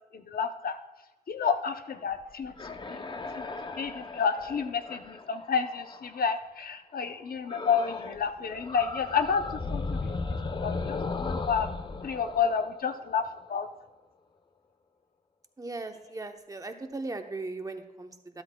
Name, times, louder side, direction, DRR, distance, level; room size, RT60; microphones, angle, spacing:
voice 1, 0.1-0.8 1.3-3.0 3.4-3.5 3.8-9.4 9.7-10.4 10.6-11.7 12.0-13.7, left 6 dB, 80° left, 8 dB, 0.7 m, -30 dB
sound 1, 2.2-6.4 7.5-8.2 8.5-13.4, left 3 dB, 30° left, 0.6 m, -36 dB
voice 2, 15.6-18.4, right 3 dB, 25° right, 5 dB, 0.8 m, -38 dB
12.5 x 12.0 x 2.2 m, 1.0 s
wide cardioid pair, 110°, 15 cm